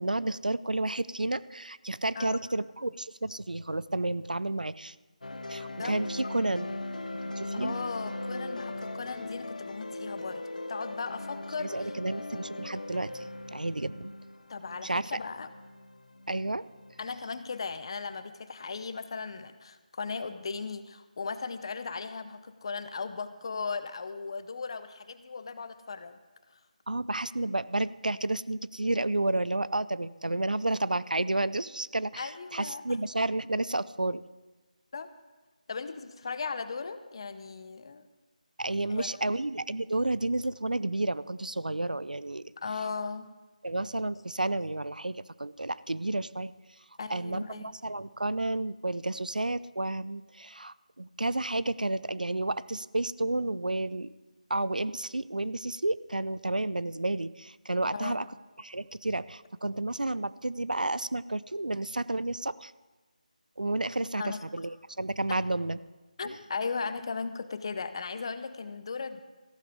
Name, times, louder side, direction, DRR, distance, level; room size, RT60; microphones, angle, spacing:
voice 1, 0.0-4.9 5.5-6.7 7.2-7.9 11.6-14.1 14.8-15.1 16.3-16.6 26.9-34.2 38.6-42.4 43.6-46.5 47.1-54.1 54.5-58.3 58.6-62.7 63.6-65.8 66.2-66.3, right 2 dB, 90° right, 18 dB, 0.5 m, -31 dB
sound 1, 5.2-17.3, left 2 dB, 70° left, 1.1 m, -39 dB
voice 2, 7.5-12.0 14.5-15.5 17.0-26.2 26.5-26.6 32.2-32.8 34.9-35.1 35.7-38.1 38.9-39.3 42.6-43.3 47.0-47.7 57.9-58.2 64.2-64.4 65.3-65.4 66.2-69.2, left 4 dB, 40° left, 12 dB, 0.7 m, -37 dB
14.5 x 10.5 x 4.9 m, 1.2 s
figure-of-eight pair, 160°, 4 cm